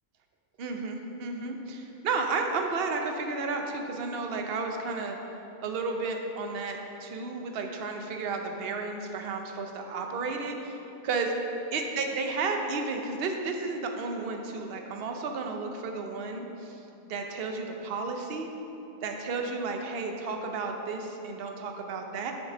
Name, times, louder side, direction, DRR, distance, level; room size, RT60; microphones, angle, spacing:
voice 1, 0.6-5.2 5.6-10.8 11.0-11.3 11.7-16.8 17.1-18.5 19.0-22.3, right 4 dB, 55° right, 3 dB, 0.8 m, -32 dB
7.6 x 5.3 x 4.9 m, 3.0 s
omnidirectional pair, 1.5 m